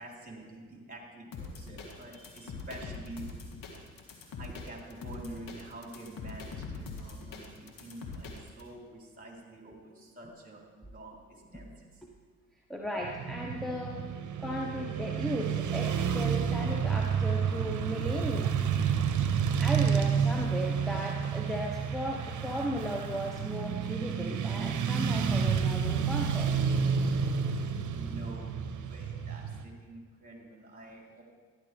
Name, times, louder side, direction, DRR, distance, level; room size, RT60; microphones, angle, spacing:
voice 1, 0.0-3.3 4.4-12.0 26.9-28.5 28.8-31.2, right 2 dB, 25° right, -2 dB, 3.7 m, -48 dB
sound 1, 1.3-8.6, left 4 dB, 60° left, 2.1 m, -43 dB
voice 2, 12.7-14.1 14.4-18.5 19.6-26.7, equal, ahead, 0 dB, 1.2 m, -36 dB
Motorcycle / Traffic noise roadway noise, 13.0-29.6, right 7 dB, 50° right, 1.0 m, -30 dB
12.5 x 11.0 x 3.5 m, 1.5 s
hypercardioid pair, 55°, 37 cm